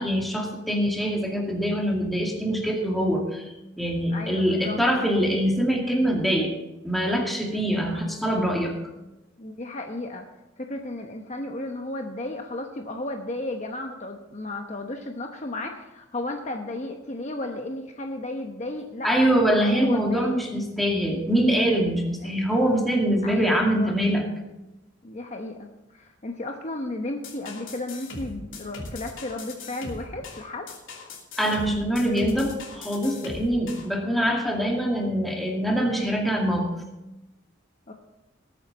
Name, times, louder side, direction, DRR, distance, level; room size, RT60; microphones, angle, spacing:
voice 1, 0.0-3.5 3.8-6.5 6.8-8.7 19.0-24.3 31.4-36.8, equal, ahead, -1 dB, 2.3 m, -24 dB
voice 2, 4.1-4.8 9.4-10.3 10.6-20.4 22.2-22.4 23.2-23.9 25.0-30.7 34.0-34.3 37.9-38.0, left 2 dB, 35° left, 3 dB, 0.9 m, -34 dB
sound 1, 27.2-33.9, left 3 dB, 80° left, 2.9 m, -39 dB
19.5 x 9.1 x 4.1 m, 0.98 s
head